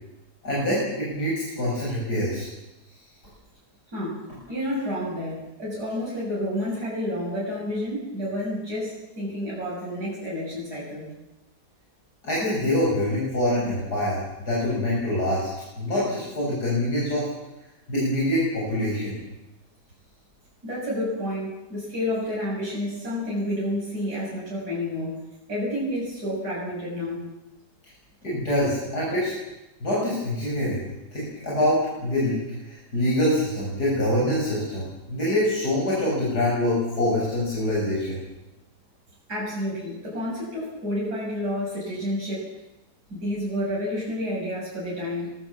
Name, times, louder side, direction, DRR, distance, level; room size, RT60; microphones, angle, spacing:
voice 1, 0.4-2.5 12.2-15.5 15.8-17.3 17.9-19.2 28.2-29.3 29.8-30.8 31.1-32.4 32.6-38.2, left 1 dB, 75° left, -6 dB, 8.2 m, -25 dB
voice 2, 4.5-11.1 20.6-25.2 25.5-27.2 39.3-42.5 43.1-45.4, left 1 dB, 75° right, -6 dB, 7.7 m, -30 dB
25.5 x 21.5 x 7.4 m, 0.97 s
omnidirectional pair, 1.7 m